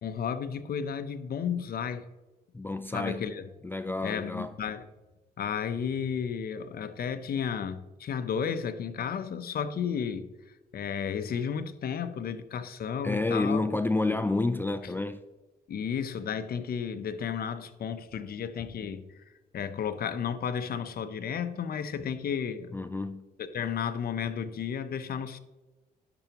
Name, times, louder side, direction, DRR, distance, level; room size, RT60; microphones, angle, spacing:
voice 1, 0.0-2.1 2.9-3.4 4.0-4.8 5.4-10.3 10.7-13.6 14.1-14.2 15.7-19.1 19.5-22.7 23.5-25.4, left 7 dB, 60° left, 0.8 m, -33 dB
voice 2, 2.5-3.2 3.6-4.5 13.0-15.2 22.7-23.2, left 2 dB, 10° left, 0.4 m, -29 dB
10.5 x 6.9 x 3.0 m
cardioid pair, 95°, 18 cm